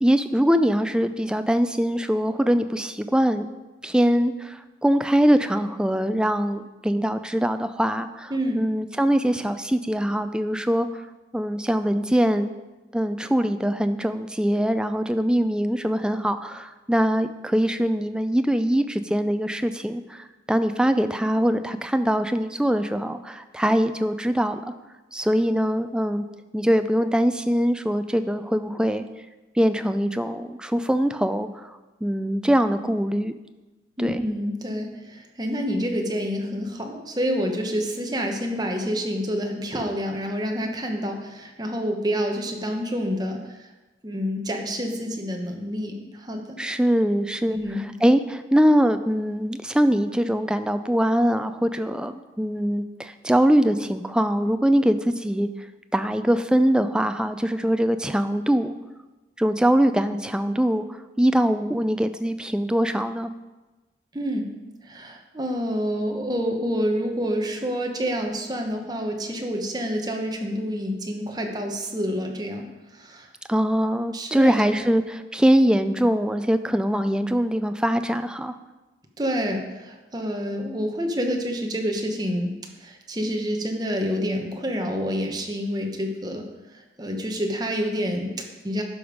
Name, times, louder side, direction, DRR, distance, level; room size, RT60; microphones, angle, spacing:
voice 1, 0.0-3.5 3.8-10.9 11.3-12.5 12.9-24.6 25.1-26.3 26.5-29.0 29.6-33.3 34.0-34.2 46.6-47.6 48.0-55.5 55.9-58.7 59.4-60.8 61.2-63.3 73.5-78.5, equal, 5° right, 10 dB, 0.3 m, -22 dB
voice 2, 34.0-43.7 44.0-46.6 47.5-47.8 64.1-64.5 64.8-72.6 72.9-73.3 74.1-74.9 79.2-82.5 82.8-88.8, equal, 20° right, 2 dB, 1.0 m, -28 dB
11.5 x 5.2 x 5.1 m, 1.1 s
head